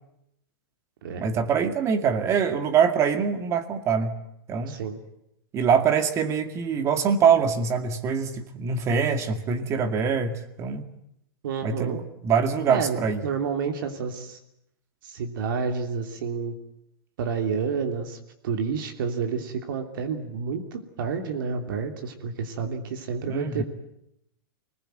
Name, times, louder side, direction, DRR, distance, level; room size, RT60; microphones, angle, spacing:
voice 1, 1.2-4.2 4.5-4.7 5.5-10.8 11.6-12.0 12.2-13.2 23.3-23.6, right 6 dB, 25° right, 9 dB, 2.2 m, -24 dB
voice 2, 4.7-5.0 11.4-12.0 12.7-13.0 13.2-14.4 15.0-16.5 17.2-18.2 18.4-23.6, right 5 dB, 65° right, 5 dB, 3.0 m, -29 dB
25.5 x 20.0 x 9.2 m, 0.79 s
hypercardioid pair, 145°, 12 cm